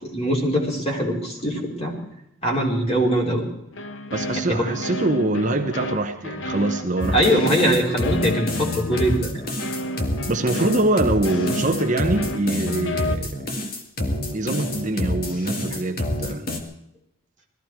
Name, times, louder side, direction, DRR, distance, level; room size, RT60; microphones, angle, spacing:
voice 1, 0.0-2.0 2.4-3.4 4.5-4.6 7.1-9.3, equal, 30° left, 0 dB, 4.1 m, -22 dB
sound 1, 3.7-13.2, left 1 dB, 65° left, 1.1 m, -32 dB
voice 2, 4.1-7.5 10.3-13.4 14.3-16.5, right 2 dB, 35° right, 4 dB, 1.1 m, -24 dB
sound 2, 7.0-16.6, left 1 dB, 45° left, 2.0 m, -27 dB
20.0 x 14.5 x 4.7 m, 0.81 s
head